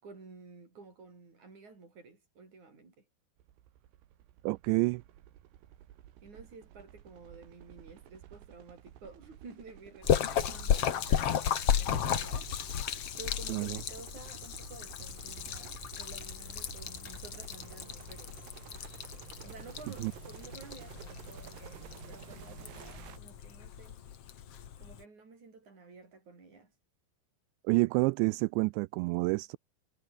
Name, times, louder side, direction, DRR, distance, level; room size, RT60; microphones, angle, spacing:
voice 1, 0.0-3.0 6.2-18.4 19.4-24.0 24.8-26.7, right 4 dB, 40° right, 8.1 m, -52 dB
sound 1, 3.4-23.2, right 12 dB, 70° right, 3.7 m, -51 dB
voice 2, 4.4-5.0 13.5-13.8 20.0-20.1 27.7-29.6, right 24 dB, 85° right, 2.7 m, -28 dB
Splash splatter, 10.0-25.0, left 9 dB, 65° left, 1.5 m, -34 dB
omnidirectional pair, 5.3 m